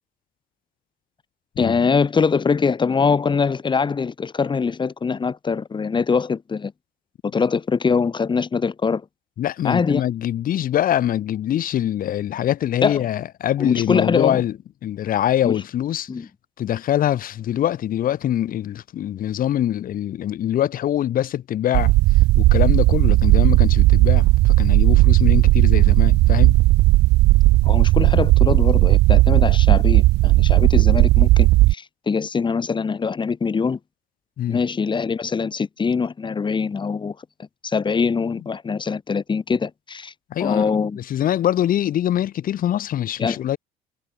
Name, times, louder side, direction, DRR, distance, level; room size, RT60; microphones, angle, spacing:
voice 1, 1.6-6.7 7.2-9.0 9.6-10.0 12.8-13.1 13.6-14.4 15.4-15.6 16.1-16.3 27.6-33.8 34.5-37.2 37.6-40.1 40.4-41.0 43.2-43.4, left 5 dB, 25° left, 1.8 m, -23 dB
voice 2, 9.4-14.5 14.8-16.1 16.6-21.9 22.3-26.6 34.4-34.6 40.3-43.6, left 11 dB, 55° left, 1.5 m, -23 dB
sound 1, 21.7-31.7, right 19 dB, 75° right, 0.7 m, -15 dB
cardioid pair, 100°, 17 cm